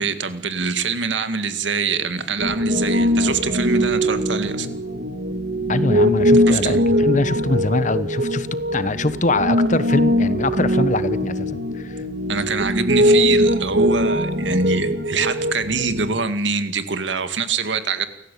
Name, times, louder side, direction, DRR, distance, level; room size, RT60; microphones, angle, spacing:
voice 1, 0.0-4.7 6.5-6.8 12.3-18.1, right 4 dB, 85° right, 10 dB, 2.1 m, -24 dB
Piano, 2.4-16.1, equal, 65° right, 2.1 m, -21 dB
voice 2, 5.7-8.5 8.7-12.0, left 2 dB, 40° left, 14 dB, 1.1 m, -23 dB
29.5 x 15.0 x 8.5 m, 0.88 s
head